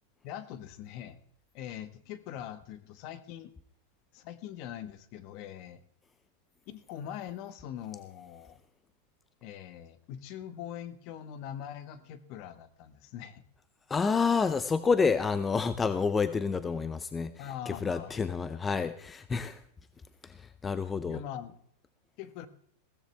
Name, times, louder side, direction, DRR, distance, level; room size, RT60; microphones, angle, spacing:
voice 1, 0.2-1.2 1.5-3.5 4.1-5.8 6.7-8.6 9.4-13.4 17.4-18.1 21.0-21.6 22.2-22.5, left 10 dB, 50° left, 13 dB, 1.2 m, -42 dB
voice 2, 13.9-19.6 20.2-21.2, left 5 dB, 15° left, 13 dB, 0.6 m, -29 dB
16.0 x 14.5 x 3.3 m, 0.63 s
supercardioid pair, 140°, 0 cm